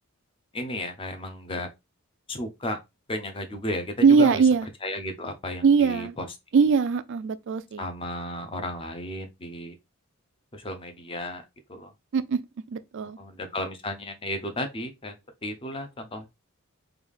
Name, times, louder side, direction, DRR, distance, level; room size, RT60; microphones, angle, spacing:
voice 1, 0.5-1.7 2.3-2.8 3.1-4.4 4.8-6.3 7.8-9.7 10.5-11.4 11.7-11.9 13.2-15.1 15.4-16.3, left 1 dB, 25° left, 0.6 m, -33 dB
voice 2, 4.0-4.7 5.6-6.2 6.5-7.8 12.1-12.4 12.7-13.2, right 5 dB, 55° right, 0.3 m, -21 dB
3.3 x 2.4 x 3.5 m
head